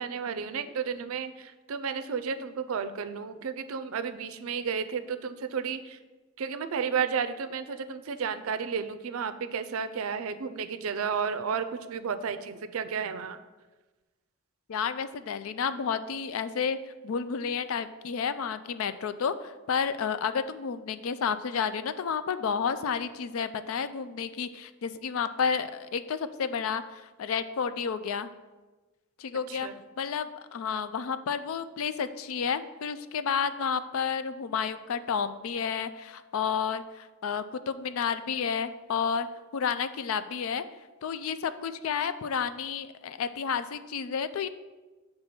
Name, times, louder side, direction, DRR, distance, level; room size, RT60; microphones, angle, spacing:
voice 1, 0.0-6.0 6.4-13.4 29.5-29.7, right 6 dB, 75° right, 11 dB, 0.4 m, -32 dB
voice 2, 14.7-16.8 17.0-28.3 29.2-29.7 30.0-39.3 39.5-40.6 41.0-44.5, left 6 dB, 75° left, 12 dB, 0.4 m, -31 dB
6.8 x 3.4 x 5.7 m, 1.2 s
head